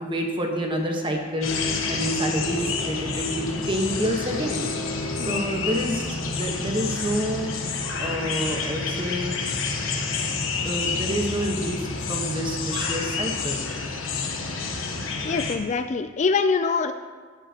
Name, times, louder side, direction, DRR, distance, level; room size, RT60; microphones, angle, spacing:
voice 1, 0.0-1.5 1.9-4.7 5.2-7.5 8.0-9.3 10.6-13.6, equal, 25° right, 1 dB, 1.3 m, -28 dB
sound 1, 1.4-15.6, left 4 dB, 85° left, 1.1 m, -29 dB
voice 2, 15.2-16.9, left 4 dB, 35° left, 9 dB, 0.3 m, -24 dB
15.5 x 7.9 x 2.9 m, 1.5 s
head